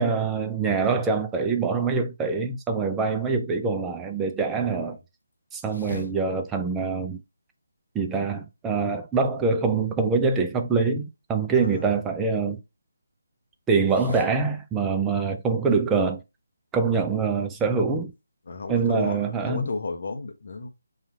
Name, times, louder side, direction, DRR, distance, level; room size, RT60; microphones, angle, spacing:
voice 1, 0.0-5.0 5.5-7.2 7.9-12.6 13.7-16.2 16.7-18.1 18.7-19.7, right 4 dB, 10° right, 0.4 m, -24 dB
voice 2, 4.5-5.0 5.7-6.1 11.5-12.0 14.1-14.2 18.5-20.7, left 3 dB, 45° left, 0.7 m, -34 dB
4.2 x 2.4 x 4.1 m
figure-of-eight pair, 150°, 0 cm